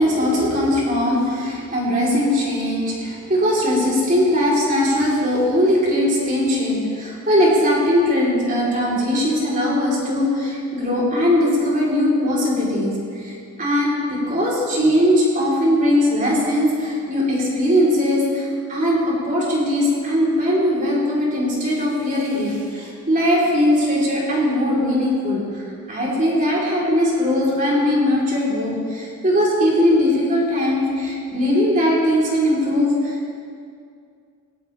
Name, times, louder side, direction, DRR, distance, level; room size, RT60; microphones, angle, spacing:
voice 1, 0.0-12.9 13.2-33.4, left 1 dB, 35° right, -5 dB, 3.8 m, -20 dB
18.0 x 17.0 x 3.5 m, 2.3 s
head